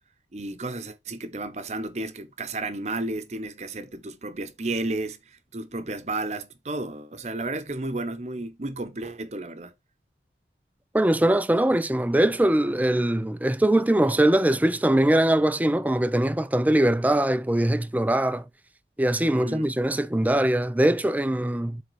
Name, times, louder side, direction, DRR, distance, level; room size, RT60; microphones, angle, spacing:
voice 1, 0.3-9.7 19.2-19.7, right 2 dB, 40° right, 0.8 m, -32 dB
voice 2, 10.9-18.4 19.0-21.8, right 1 dB, 10° right, 0.4 m, -22 dB
8.0 x 3.6 x 4.6 m
head